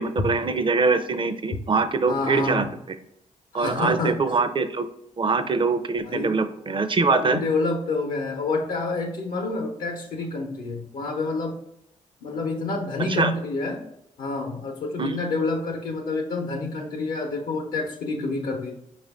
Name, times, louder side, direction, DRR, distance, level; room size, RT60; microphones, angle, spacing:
voice 1, 0.0-2.6 3.5-4.9 5.2-7.4 13.1-13.3 15.0-15.2, right 4 dB, 35° right, 11 dB, 0.5 m, -23 dB
voice 2, 2.1-2.7 3.5-4.2 6.0-6.4 7.2-11.6 12.2-13.8 14.2-18.7, left 3 dB, 80° left, 2 dB, 0.7 m, -28 dB
5.0 x 2.5 x 3.4 m, 0.80 s
cardioid pair, 55°, 14 cm